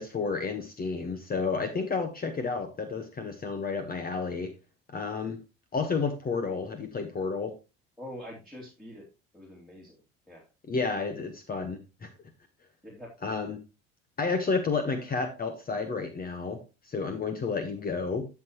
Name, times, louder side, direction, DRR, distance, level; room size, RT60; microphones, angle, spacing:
voice 1, 0.0-4.5 4.9-5.4 5.7-7.5 10.7-12.1 13.2-13.6 14.2-16.6 16.8-18.3, left 4 dB, 30° left, 8 dB, 1.3 m, -31 dB
voice 2, 8.0-9.1 9.3-10.0 10.3-10.5 12.8-13.1, left 1 dB, ahead, -3 dB, 2.7 m, -44 dB
12.0 x 6.0 x 3.0 m, 0.28 s
hypercardioid pair, 70°, 30 cm